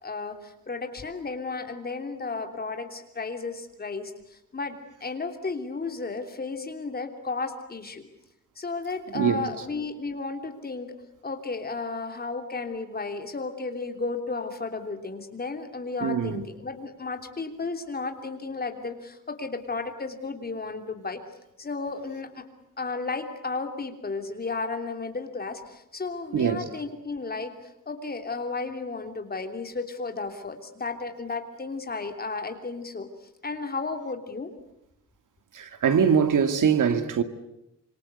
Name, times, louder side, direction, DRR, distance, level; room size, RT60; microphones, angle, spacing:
voice 1, 0.0-8.0 8.6-10.9 11.2-21.2 21.6-22.4 22.8-33.1 33.4-34.5, left 3 dB, 30° left, 3.2 m, -33 dB
voice 2, 9.1-9.6 16.0-16.4 26.3-26.7 35.5-37.2, right 7 dB, 85° right, 2.3 m, -23 dB
26.5 x 25.0 x 8.2 m
wide cardioid pair, 160°, 31 cm